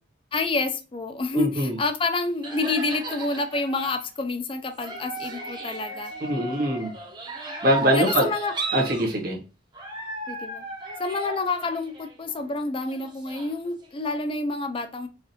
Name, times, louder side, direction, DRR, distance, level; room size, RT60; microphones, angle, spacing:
voice 1, 0.3-6.1 7.9-8.5 10.3-10.6 11.0-15.1, left 3 dB, 25° left, 7 dB, 0.5 m, -28 dB
voice 2, 1.3-1.8 6.2-6.9 7.6-8.3 8.7-9.4, right 1 dB, 50° right, -2 dB, 1.4 m, -23 dB
sound 1, 1.7-1.8 2.4-4.1 4.8-9.1 9.7-12.6 12.9-14.2, right 2 dB, 25° right, 0.8 m, -36 dB
4.9 x 2.5 x 2.8 m, 0.33 s
head